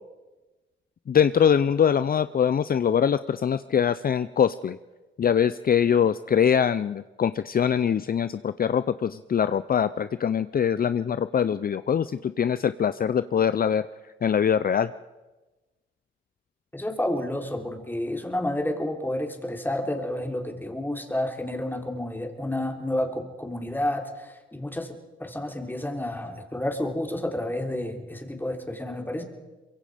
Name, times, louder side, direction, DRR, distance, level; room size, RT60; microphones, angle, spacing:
voice 1, 1.1-4.8 5.2-13.8 14.2-14.9, left 8 dB, 45° left, 14 dB, 0.6 m, -23 dB
voice 2, 16.7-29.2, left 1 dB, 10° left, 3 dB, 3.5 m, -30 dB
24.0 x 22.5 x 5.1 m, 1.1 s
cardioid pair, 75°, 20 cm